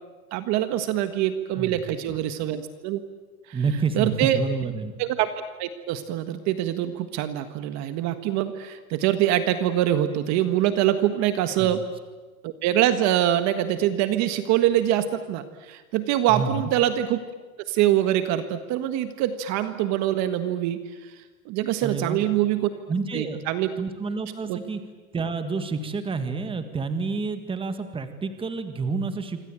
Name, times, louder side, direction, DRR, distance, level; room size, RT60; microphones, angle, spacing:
voice 1, 0.3-3.0 3.5-3.6 3.9-4.4 5.0-5.3 5.6-11.9 12.4-17.2 17.7-21.1 21.4-22.7 23.1-23.7 24.4-24.6, right 12 dB, 40° right, 10 dB, 1.6 m, -24 dB
voice 2, 3.5-4.9 11.6-11.7 16.3-16.7 21.8-22.2 22.9-23.4 23.8-24.8 25.1-29.4, right 4 dB, 10° right, 9 dB, 1.9 m, -29 dB
26.5 x 25.0 x 9.0 m, 1.3 s
supercardioid pair, 150°, 42 cm